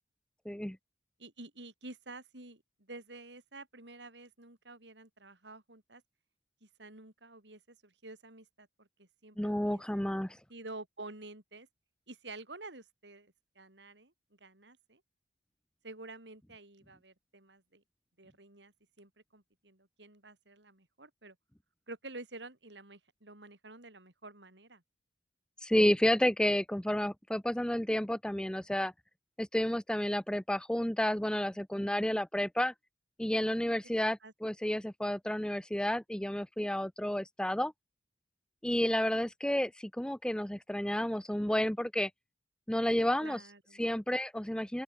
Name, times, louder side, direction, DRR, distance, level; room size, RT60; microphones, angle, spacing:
voice 1, 0.5-0.8 9.4-10.4 25.6-28.9 29.4-32.7 33.2-37.7 38.6-42.1 42.7-43.4 43.8-44.8, left 1 dB, 5° left, 0.5 m, -31 dB
voice 2, 1.2-6.0 6.6-10.1 10.5-11.7 12.1-14.1 14.4-15.0 15.8-17.8 18.2-21.4 21.9-24.8 34.0-34.3 39.0-39.2 43.0-43.9, right 2 dB, 80° right, 5.2 m, -50 dB
open air
head